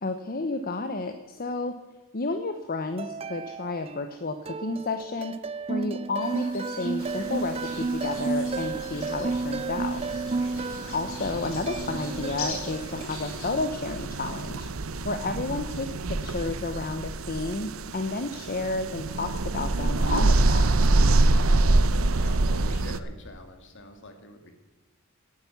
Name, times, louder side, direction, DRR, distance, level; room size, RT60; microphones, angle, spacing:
voice 1, 0.0-1.7 2.1-5.3 5.7-10.0 10.9-14.7 15.0-20.7, left 3 dB, 45° left, 7 dB, 1.0 m, -31 dB
sound 1, 3.0-4.2 4.5-13.0, right 3 dB, 30° right, 0.4 m, -32 dB
sound 2, 6.2-13.6, left 4 dB, 75° left, 3.9 m, -43 dB
sound 3, 7.0-23.0, right 2 dB, 70° right, 0.8 m, -27 dB
voice 2, 10.5-10.9 21.7-24.5, left 1 dB, 60° left, 6 dB, 2.5 m, -46 dB
17.5 x 10.5 x 7.1 m, 1.2 s
head